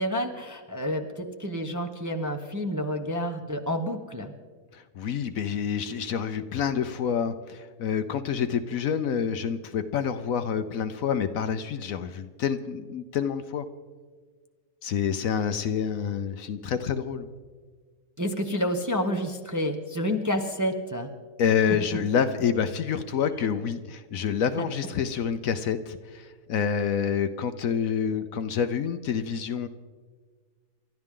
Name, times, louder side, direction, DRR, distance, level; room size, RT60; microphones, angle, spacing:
voice 1, 0.0-4.3 18.2-21.1, equal, 15° right, 3 dB, 0.7 m, -29 dB
voice 2, 4.7-13.7 14.8-17.3 21.4-29.7, left 7 dB, 65° left, 10 dB, 1.0 m, -28 dB
29.0 x 12.5 x 3.7 m, 1.6 s
omnidirectional pair, 1.7 m